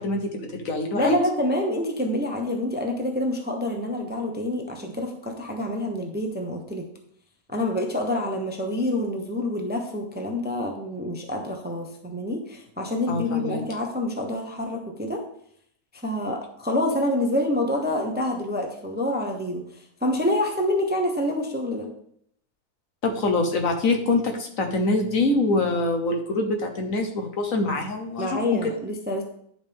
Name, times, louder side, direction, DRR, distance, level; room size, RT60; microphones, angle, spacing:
voice 1, 0.0-1.2 13.1-13.6 23.0-28.7, left 2 dB, 60° left, 4 dB, 1.4 m, -25 dB
voice 2, 0.9-6.8 7.5-15.2 16.0-19.6 20.0-21.9 28.2-29.2, left 1 dB, 10° right, 2 dB, 0.8 m, -27 dB
11.0 x 5.6 x 3.6 m, 0.67 s
omnidirectional pair, 1.7 m